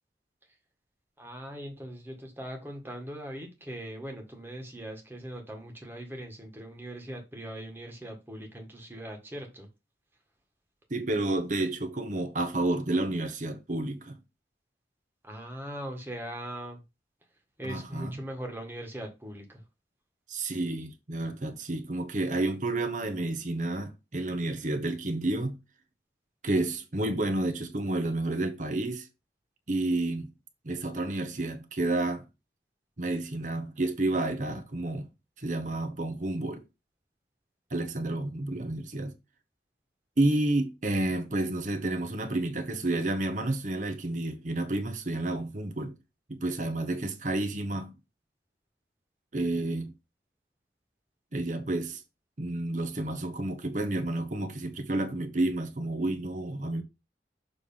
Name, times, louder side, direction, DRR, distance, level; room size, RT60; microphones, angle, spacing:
voice 1, 1.2-9.7 15.2-16.8 17.6-19.6, right 1 dB, 10° right, 1.5 m, -40 dB
voice 2, 10.9-14.2 17.6-18.1 20.3-25.6 26.4-29.1 29.7-30.3 30.6-32.2 33.0-35.1 35.4-36.6 37.7-39.1 40.2-45.9 46.3-47.9 49.3-49.9 51.3-52.0 52.4-56.8, right 2 dB, 45° right, 1.0 m, -30 dB
6.8 x 3.2 x 5.5 m
head